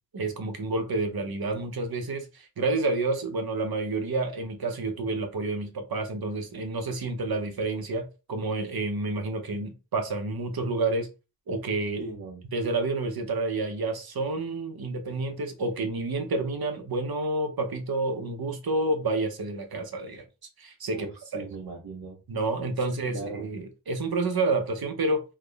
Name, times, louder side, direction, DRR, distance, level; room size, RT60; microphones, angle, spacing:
voice 1, 0.1-11.1 11.5-12.0 12.5-20.2 20.6-21.1 21.3-21.4 22.3-25.2, right 2 dB, 60° right, 0.8 m, -29 dB
voice 2, 12.0-12.4 20.9-22.2 23.0-23.5, right 3 dB, 80° right, 1.3 m, -38 dB
3.5 x 2.1 x 3.4 m
wide cardioid pair, 100°, 41 cm